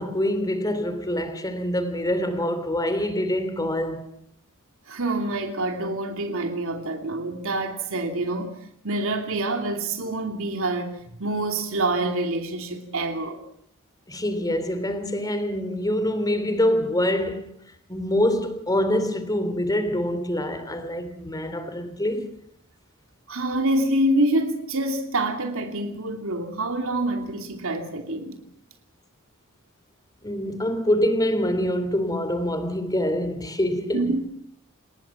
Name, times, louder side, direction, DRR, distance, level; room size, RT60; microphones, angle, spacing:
voice 1, 0.0-4.0 14.1-17.6 17.9-22.4 30.2-34.2, left 1 dB, 15° left, 3.0 m, -25 dB
voice 2, 4.9-10.9 11.2-13.4 23.3-28.4 33.9-34.2, right 1 dB, 65° right, 2.9 m, -26 dB
28.0 x 19.5 x 7.3 m
head